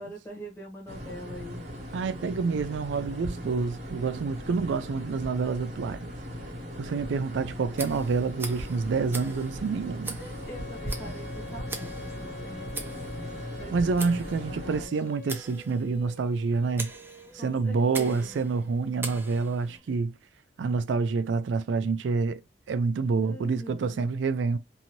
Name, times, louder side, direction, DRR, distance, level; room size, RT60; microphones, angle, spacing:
voice 1, 0.0-1.6 10.4-12.9 13.5-14.9 17.4-18.4 19.7-20.0 23.2-24.1, equal, 15° left, 1.1 m, -44 dB
sound 1, 0.9-14.9, equal, 35° right, 1.1 m, -38 dB
voice 2, 1.9-6.0 6.8-10.2 13.7-16.9 17.3-20.1 20.6-22.4 22.7-24.6, right 4 dB, 85° right, 0.4 m, -27 dB
Tick, 7.7-19.8, right 3 dB, 10° right, 0.4 m, -42 dB
Female singing, 10.2-19.0, left 3 dB, 60° left, 0.7 m, -46 dB
2.7 x 2.6 x 2.9 m
head